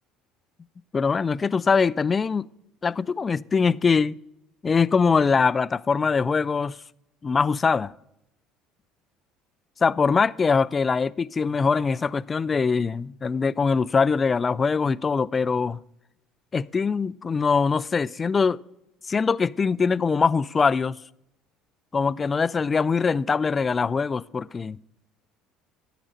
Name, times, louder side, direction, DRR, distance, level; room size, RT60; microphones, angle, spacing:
voice 1, 0.9-2.5 2.8-4.1 4.6-6.8 7.2-7.9 9.8-15.8 16.5-18.6 19.1-21.0 21.9-24.8, left 5 dB, 30° left, 0.3 m, -22 dB
12.0 x 5.0 x 6.5 m
hypercardioid pair, 65°, 0 cm